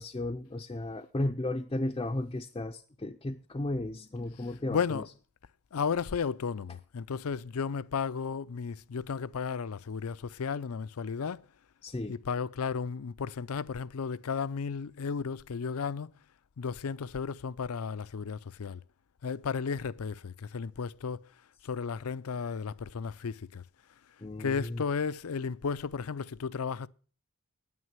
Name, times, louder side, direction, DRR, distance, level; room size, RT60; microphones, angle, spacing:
voice 1, 0.0-5.0 11.8-12.1 24.2-24.8, left 2 dB, 20° left, 0.5 m, -34 dB
voice 2, 4.7-5.1 5.7-11.4 12.1-16.1 16.6-18.8 19.2-21.2 21.6-23.6 24.4-26.9, left 6 dB, 75° left, 0.5 m, -34 dB
9.6 x 9.5 x 7.5 m
head